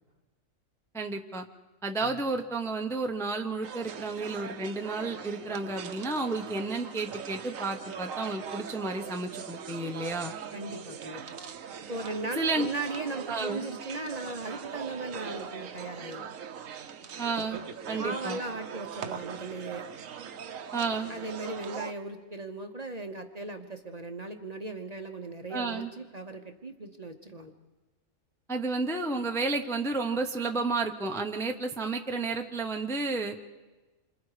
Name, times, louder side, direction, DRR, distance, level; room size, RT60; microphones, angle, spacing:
voice 1, 0.9-1.4 1.8-10.3 12.4-12.7 13.3-13.6 17.2-17.6 17.9-18.4 20.7-21.1 25.5-25.9 28.5-33.4, right 3 dB, 5° left, 4 dB, 0.7 m, -31 dB
sound 1, 3.6-21.9, right 7 dB, 75° right, 1.3 m, -41 dB
voice 2, 10.5-11.4 11.9-16.3 18.0-19.9 21.1-27.5, right 2 dB, 35° right, 5 dB, 0.9 m, -38 dB
27.5 x 25.5 x 4.9 m, 1.2 s
omnidirectional pair, 1.4 m